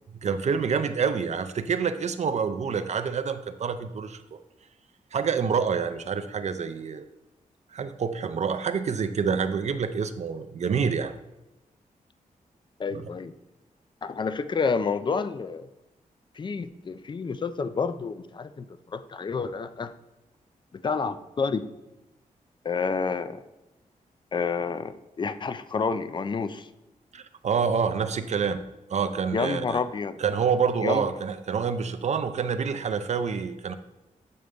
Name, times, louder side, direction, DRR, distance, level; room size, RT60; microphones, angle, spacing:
voice 1, 0.1-4.4 5.1-7.0 7.7-11.1 12.9-13.1 27.1-28.6 28.9-29.8 30.2-33.7, right 6 dB, 55° right, 10 dB, 0.4 m, -27 dB
voice 2, 12.8-13.3 14.0-15.7 16.4-18.7 18.9-19.9 20.8-21.6 22.6-23.4 24.3-26.7 29.3-30.1 30.8-31.0, left 5 dB, 35° left, 12 dB, 0.4 m, -29 dB
7.6 x 3.8 x 3.5 m, 1.0 s
cardioid pair, 75°, 14 cm